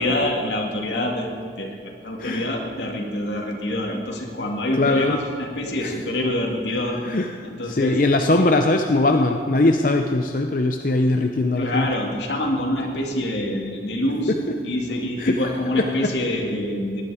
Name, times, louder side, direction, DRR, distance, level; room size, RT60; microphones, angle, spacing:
voice 1, 0.0-1.7 2.0-7.0 7.4-8.0 11.6-14.3 14.6-17.0, left 1 dB, 85° left, 0 dB, 2.2 m, -26 dB
voice 2, 4.8-5.2 5.8-6.0 7.0-7.4 7.6-11.9 14.3-14.6 15.2-16.2, left 2 dB, 50° left, 5 dB, 0.6 m, -21 dB
18.5 x 11.0 x 4.9 m, 2.1 s
head